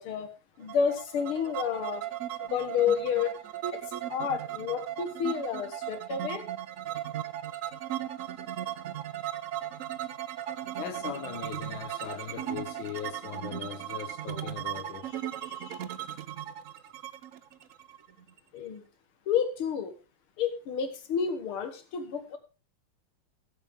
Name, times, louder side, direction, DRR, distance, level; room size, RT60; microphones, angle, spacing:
voice 1, 0.0-2.0 2.4-3.3 4.1-6.5 18.5-18.8 19.3-19.9 20.4-22.4, left 7 dB, 90° left, 2.4 m, -30 dB
sound 1, 0.7-18.4, right 12 dB, 85° right, 0.7 m, -37 dB
voice 2, 10.8-15.9, left 9 dB, 65° left, 1.7 m, -40 dB
16.0 x 7.7 x 3.6 m
omnidirectional pair, 2.3 m